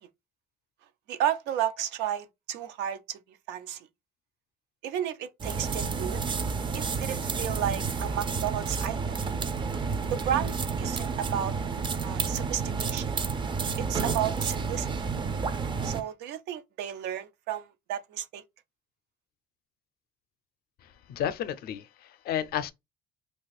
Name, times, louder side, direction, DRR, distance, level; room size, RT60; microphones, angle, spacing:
voice 1, 1.1-3.2 3.5-3.9 4.8-6.2 6.7-9.2 10.1-11.5 12.0-13.1 13.8-14.9 15.8-18.4, right 10 dB, 85° right, 0.5 m, -32 dB
sound 1, 5.4-16.0, right 5 dB, 30° right, 0.4 m, -30 dB
voice 2, 20.8-22.7, left 10 dB, 65° left, 0.5 m, -32 dB
2.4 x 2.3 x 3.9 m
cardioid pair, 110°, 17 cm